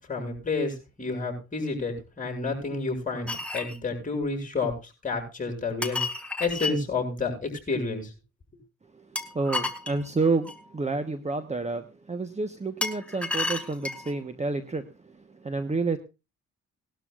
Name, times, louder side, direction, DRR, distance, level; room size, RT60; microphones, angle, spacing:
voice 1, 0.1-4.7 5.0-6.0 6.4-8.1, left 3 dB, 25° left, 1 dB, 7.2 m, -30 dB
sound 1, 3.3-3.8 5.8-6.8 9.2-10.6 12.8-14.1, left 2 dB, 5° left, 2.1 m, -31 dB
voice 2, 9.3-15.1 15.4-16.0, right 3 dB, 20° right, 8 dB, 1.3 m, -29 dB
20.0 x 12.0 x 2.5 m, 0.29 s
cardioid pair, 100°, 30 cm